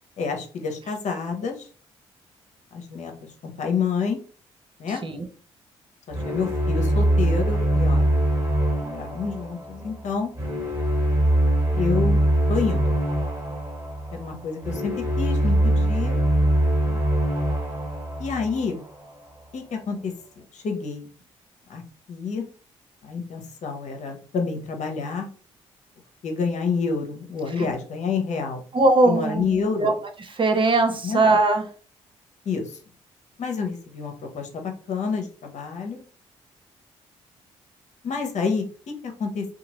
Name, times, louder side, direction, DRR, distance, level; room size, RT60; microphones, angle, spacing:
voice 1, 0.2-1.7 2.7-3.1 3.4-4.2 4.8-5.0 6.1-8.2 8.8-10.3 11.7-12.2 12.5-13.0 14.1-16.2 16.8-17.0 18.2-18.8 19.5-20.1 20.5-21.1 21.7-21.8 22.1-22.4 23.0-25.3 26.2-28.6 29.1-29.9 31.0-31.2 32.5-32.8 33.4-36.0 38.0-38.6 39.0-39.5, left 5 dB, 60° left, 4 dB, 0.8 m, -28 dB
sound 1, 6.1-19.2, right 1 dB, 20° right, 1.5 m, -23 dB
voice 2, 28.7-29.9 30.2-31.6, right 2 dB, 40° right, 6 dB, 0.8 m, -20 dB
2.8 x 2.4 x 2.9 m, 0.40 s
hypercardioid pair, 50°, 14 cm